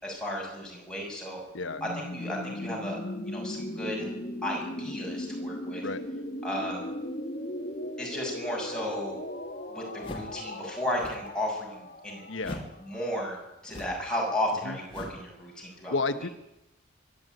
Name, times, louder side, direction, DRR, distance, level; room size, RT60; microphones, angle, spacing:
voice 1, 0.0-1.4 1.8-4.1 4.4-5.8 6.4-6.8 8.0-9.2 9.7-13.4 13.6-16.0, left 1 dB, 5° left, -2 dB, 6.7 m, -34 dB
sound 1, 1.6-13.4, left 1 dB, 45° left, 1.8 m, -38 dB
sound 2, 10.0-10.4 10.9-11.3 12.4-12.8 13.6-14.1 14.9-15.3, left 1 dB, 25° left, 2.5 m, -41 dB
voice 2, 12.3-12.6 14.6-14.8 15.9-16.3, left 3 dB, 85° left, 9 dB, 1.3 m, -31 dB
21.5 x 13.5 x 9.2 m, 0.91 s
head